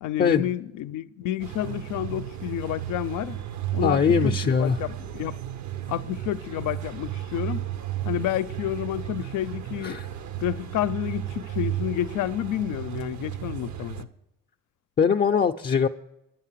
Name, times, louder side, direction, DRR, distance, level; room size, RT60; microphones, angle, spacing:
voice 1, 0.0-3.4 3.7-5.4 5.9-7.6 8.0-10.0 10.4-14.1, left 12 dB, 85° left, 0.6 m, -30 dB
sound 1, 1.4-14.0, right 12 dB, 65° right, 1.0 m, -33 dB
voice 2, 3.8-4.8 9.8-10.1 15.0-15.9, left 7 dB, 35° left, 0.5 m, -21 dB
11.0 x 9.3 x 7.4 m
cardioid pair, 90°, 30 cm